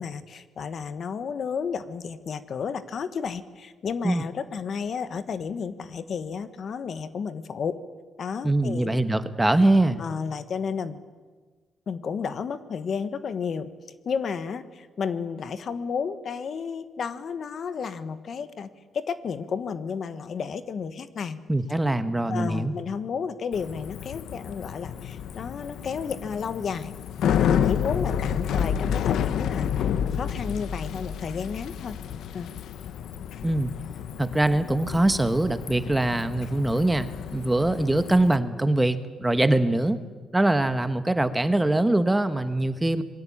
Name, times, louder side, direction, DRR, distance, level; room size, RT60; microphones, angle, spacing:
voice 1, 0.0-7.8 8.2-8.9 9.7-11.0 11.9-13.7 14.0-18.7 18.9-21.4 22.2-26.9 27.4-32.0 32.3-32.5, left 6 dB, 50° left, 12 dB, 1.4 m, -32 dB
voice 2, 8.4-10.0 21.5-22.7 33.4-33.7 34.2-40.0 40.3-43.0, right 1 dB, 10° right, 10 dB, 1.3 m, -23 dB
Bicycle, 23.5-38.4, left 8 dB, 75° left, 1.0 m, -30 dB
27.0 x 22.0 x 8.7 m, 1.4 s
cardioid pair, 130°, 0 cm